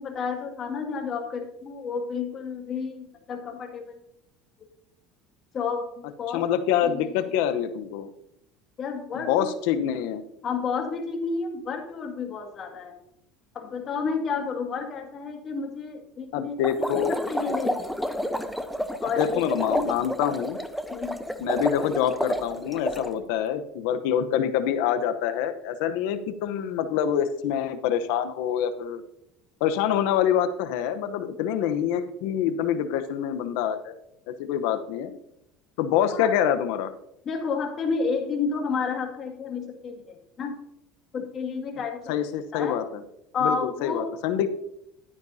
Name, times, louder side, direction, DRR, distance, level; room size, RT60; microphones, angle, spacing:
voice 1, 0.0-4.0 5.5-6.4 6.8-7.1 8.8-9.5 10.4-12.9 13.5-16.5 17.0-17.9 19.0-19.4 19.7-19.8 20.9-21.2 36.1-36.3 37.3-40.6 41.1-42.2 42.5-42.8 43.3-44.1, left 5 dB, 40° left, 3 dB, 2.1 m, -31 dB
voice 2, 6.3-8.1 9.2-10.2 16.3-17.2 19.2-20.6 21.4-29.0 29.6-33.9 34.4-35.2 35.8-36.9 41.8-43.0 43.4-44.5, left 9 dB, 75° left, 10 dB, 0.8 m, -26 dB
sound 1, 16.6-23.1, equal, ahead, 0.8 m, -30 dB
12.0 x 9.6 x 2.7 m, 0.81 s
supercardioid pair, 115°, 0 cm